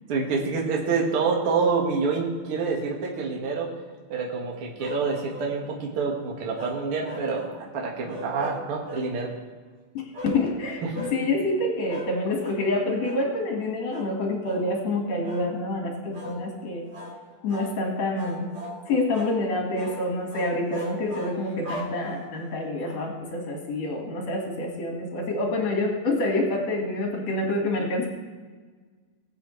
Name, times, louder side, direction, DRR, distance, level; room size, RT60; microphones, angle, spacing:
voice 1, 0.1-3.7 4.1-9.3 10.8-10.9, right 4 dB, 85° right, -2 dB, 1.2 m, -27 dB
sound 1, 4.8-5.5 6.5-7.6 8.1-9.1 10.1-10.4 10.9-11.2 11.9-12.1 12.4-12.6 13.0-13.2 13.9-14.1 14.4-14.7 15.2-15.5 16.1-16.4 16.9-17.2 17.5-17.7 18.2-18.8 19.1-19.4 19.8-20.0 20.3-22.4, equal, 30° right, 2.1 m, -38 dB
voice 2, 9.9-16.9 17.4-18.5 18.9-28.1, left 2 dB, 50° left, 0 dB, 2.1 m, -27 dB
20.0 x 8.3 x 3.2 m, 1.4 s
omnidirectional pair, 5.4 m